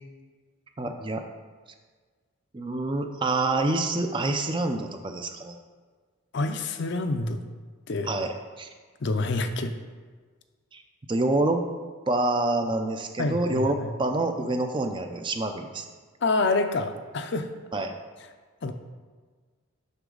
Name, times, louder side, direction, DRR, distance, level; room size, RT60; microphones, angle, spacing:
voice 1, 0.8-1.2 2.5-5.6 8.0-8.7 10.7-10.8 11.1-11.6 12.1-15.9 17.7-18.0, right 2 dB, 20° right, 5 dB, 0.4 m, -27 dB
voice 2, 6.3-7.4 7.9-8.1 9.0-9.7 13.2-13.9 16.2-17.5 18.6-18.7, left 3 dB, 55° left, 8 dB, 0.5 m, -27 dB
8.0 x 6.0 x 3.9 m, 1.5 s
head